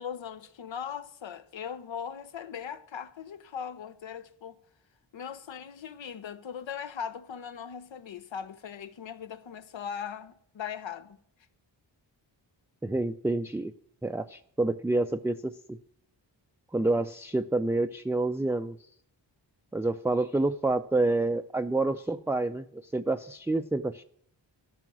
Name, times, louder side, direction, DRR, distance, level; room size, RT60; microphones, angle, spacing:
voice 1, 0.0-4.6 5.1-11.2, left 8 dB, 85° left, 0.9 m, -39 dB
voice 2, 12.8-13.7 14.0-15.8 16.7-18.8 19.7-24.0, right 2 dB, 5° right, 0.3 m, -28 dB
13.0 x 5.7 x 6.1 m
wide cardioid pair, 95°, 45 cm